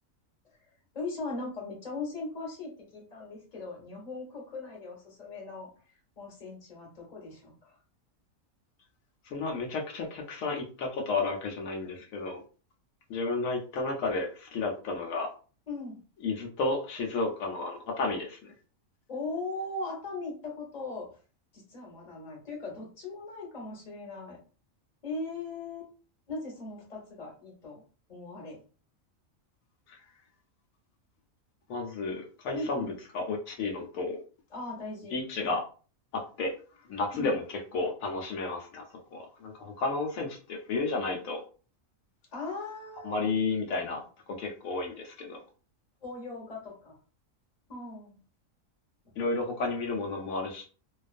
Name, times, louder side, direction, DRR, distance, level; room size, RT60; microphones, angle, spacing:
voice 1, 0.6-5.7 6.2-7.8 15.7-16.0 19.1-21.1 21.5-24.4 25.0-25.9 26.3-28.6 32.5-32.9 34.5-35.5 37.1-37.3 42.3-43.2 46.0-47.0 47.7-48.2, left 3 dB, 35° left, -2 dB, 1.0 m, -39 dB
voice 2, 9.3-12.4 13.1-15.3 16.2-18.4 29.9-30.0 31.7-32.9 33.1-34.2 35.1-35.6 36.1-36.5 36.9-37.4 37.7-38.8 39.1-41.4 43.0-44.0 44.4-45.4 49.2-50.6, left 3 dB, 80° left, 0 dB, 1.0 m, -32 dB
2.3 x 2.3 x 2.4 m, 0.38 s
omnidirectional pair, 1.4 m